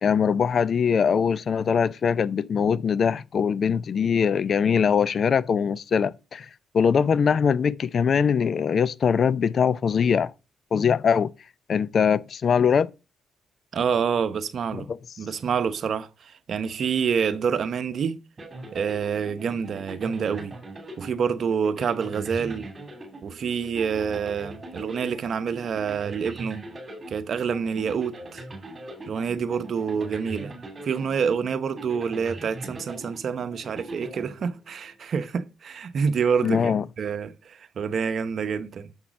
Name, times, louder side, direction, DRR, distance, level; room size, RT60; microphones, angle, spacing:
voice 1, 0.0-6.5 6.7-10.3 10.7-11.3 11.7-12.9 14.9-15.0 36.4-36.8, left 6 dB, 55° left, 0.5 m, -22 dB
voice 2, 13.7-14.9 15.2-18.2 18.7-20.6 21.0-22.7 23.2-26.6 27.1-28.4 29.1-30.5 30.8-38.9, right 6 dB, 60° right, 0.8 m, -27 dB
sound 1, 18.4-34.9, right 1 dB, 35° right, 2.9 m, -41 dB
7.2 x 6.0 x 5.0 m
supercardioid pair, 60°, 0 cm